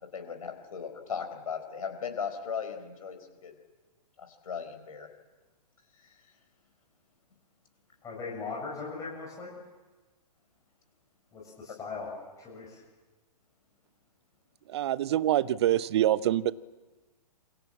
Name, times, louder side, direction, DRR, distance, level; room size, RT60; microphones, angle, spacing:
voice 1, 0.1-3.5 4.2-5.1, left 6 dB, 60° left, 6 dB, 4.5 m, -37 dB
voice 2, 8.0-9.5 11.3-12.1 12.4-12.8, left 4 dB, 15° left, -3 dB, 7.2 m, -39 dB
voice 3, 14.7-16.5, right 12 dB, 40° right, 19 dB, 0.7 m, -25 dB
28.0 x 23.5 x 7.5 m, 1.3 s
figure-of-eight pair, 115°, 21 cm